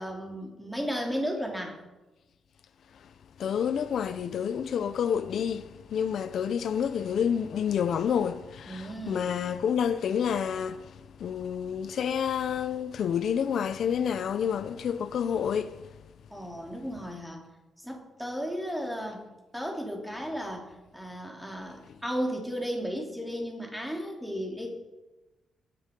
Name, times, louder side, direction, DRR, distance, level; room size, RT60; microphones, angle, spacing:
voice 1, 0.0-1.8 8.7-9.3 16.3-17.4 17.8-19.2 19.5-24.7, equal, ahead, 3.3 m, -34 dB
voice 2, 3.4-15.9, left 8 dB, 65° left, 0.7 m, -29 dB
21.5 x 10.0 x 5.4 m
cardioid pair, 140°, 0 cm